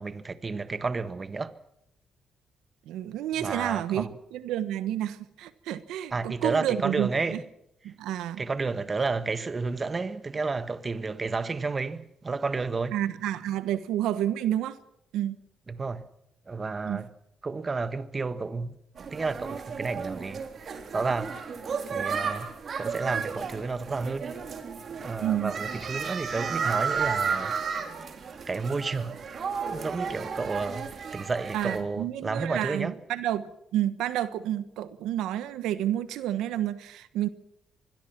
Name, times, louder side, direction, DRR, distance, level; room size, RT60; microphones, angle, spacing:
voice 1, 0.0-1.6 3.4-4.2 6.1-7.4 8.4-13.0 15.7-16.1 16.5-17.1 17.4-18.8 19.1-20.4 20.9-21.4 21.9-22.5 22.8-24.3 25.0-27.6 28.5-29.2 29.7-33.0, right 4 dB, 30° right, 1.5 m, -31 dB
voice 2, 2.9-7.4 7.8-8.4 12.9-14.8 15.1-15.4 16.8-17.1 25.2-25.5 31.5-37.3, right 12 dB, 90° right, 1.2 m, -30 dB
sound 1, 19.0-31.8, right 6 dB, 50° right, 3.9 m, -33 dB
25.0 x 21.5 x 6.0 m
cardioid pair, 90°, 0 cm